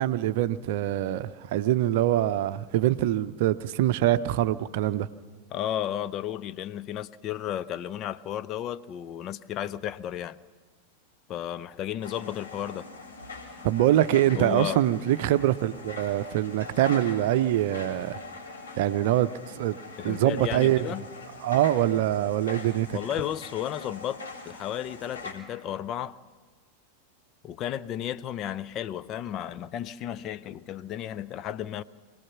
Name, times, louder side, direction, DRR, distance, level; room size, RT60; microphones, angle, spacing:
voice 1, 0.0-5.1 13.6-18.2 18.8-19.3 19.6-19.8 20.0-20.9 21.4-23.0, right 13 dB, 50° right, 0.7 m, -24 dB
voice 2, 5.5-10.4 11.3-12.9 14.3-14.8 20.0-21.1 22.9-26.2 27.4-31.8, left 11 dB, 35° left, 0.6 m, -33 dB
sound 1, 12.0-25.3, left 3 dB, 70° left, 3.6 m, -42 dB
24.5 x 18.0 x 6.0 m
figure-of-eight pair, 90°, 0 cm